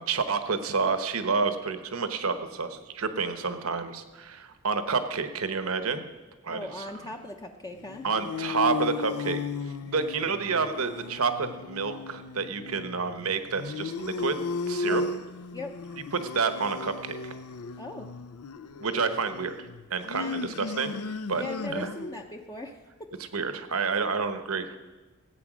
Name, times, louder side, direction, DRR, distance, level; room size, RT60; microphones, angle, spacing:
voice 1, 0.0-6.0 6.4-7.1 8.0-14.4 14.6-15.0 16.1-17.3 18.8-20.9 21.3-21.4 21.7-21.9 23.3-24.8, right 4 dB, 70° right, 9 dB, 1.0 m, -29 dB
voice 2, 6.5-8.0 14.8-15.0 15.5-15.7 17.8-18.1 20.1-20.5 21.4-23.1, left 1 dB, 15° left, 2 dB, 0.7 m, -39 dB
sound 1, 7.8-22.3, left 4 dB, 85° left, 0.5 m, -35 dB
16.5 x 8.5 x 6.2 m, 1.2 s
head